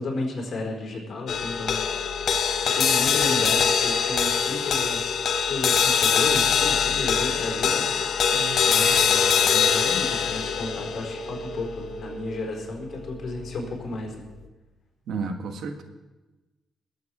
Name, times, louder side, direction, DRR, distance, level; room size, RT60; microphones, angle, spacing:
voice 1, 0.0-2.2 2.7-5.0 5.5-8.2 8.6-14.2, left 2 dB, 50° left, 1 dB, 4.2 m, -33 dB
sound 1, 1.3-13.8, left 7 dB, 65° left, 1.0 m, -23 dB
voice 2, 8.3-9.0 15.1-15.8, right 4 dB, 75° right, 5 dB, 1.5 m, -33 dB
20.5 x 8.3 x 4.8 m, 1.1 s
cardioid pair, 125°, 0 cm